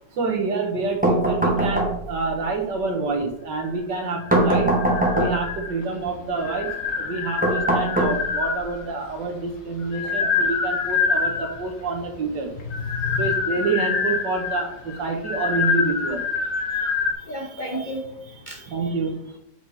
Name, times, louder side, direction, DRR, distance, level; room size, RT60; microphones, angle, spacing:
voice 1, 0.1-4.7 5.1-12.5 13.2-16.2 18.7-19.2, right 3 dB, 70° right, 3 dB, 1.8 m, -27 dB
sound 1, 1.0-2.3 4.3-5.6 7.4-8.6, right 1 dB, 5° right, 1.0 m, -21 dB
sound 2, 4.1-5.9 6.4-8.8 9.6-11.7 12.6-17.1, left 5 dB, 85° left, 1.9 m, -26 dB
voice 2, 12.6-13.3 17.3-18.0 18.5-18.9, left 3 dB, 35° left, -1 dB, 0.8 m, -31 dB
8.0 x 4.8 x 4.1 m, 0.75 s
omnidirectional pair, 2.0 m